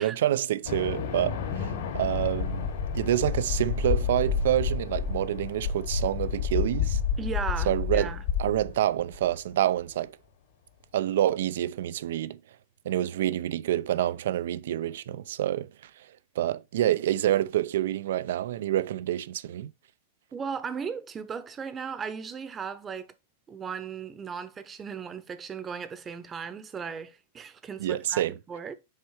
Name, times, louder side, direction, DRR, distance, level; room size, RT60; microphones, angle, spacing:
voice 1, 0.0-7.0 7.7-10.2 10.9-12.4 12.8-19.7 27.8-28.4, right 12 dB, 75° right, 0.5 m, -27 dB
sound 1, 0.6-9.2, left 6 dB, 70° left, 2.5 m, -30 dB
voice 2, 7.2-8.2 20.3-23.1 23.5-28.7, right 6 dB, 20° right, 0.8 m, -36 dB
6.5 x 4.5 x 4.7 m
supercardioid pair, 150°, 0 cm